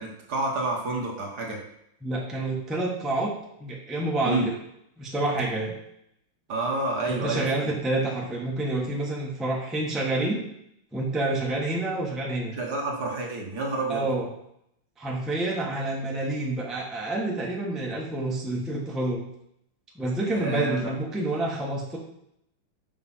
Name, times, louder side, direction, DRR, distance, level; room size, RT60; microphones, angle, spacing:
voice 1, 0.0-1.6 4.3-4.5 6.5-7.7 12.5-14.1 20.3-20.9, right 2 dB, 50° right, -1 dB, 1.8 m, -29 dB
voice 2, 2.0-3.3 3.6-4.5 5.0-5.7 7.1-10.4 10.9-12.5 13.9-14.3 15.0-19.2 19.9-22.0, right 2 dB, ahead, -2 dB, 1.2 m, -28 dB
7.3 x 5.8 x 5.7 m, 0.76 s
omnidirectional pair, 2.3 m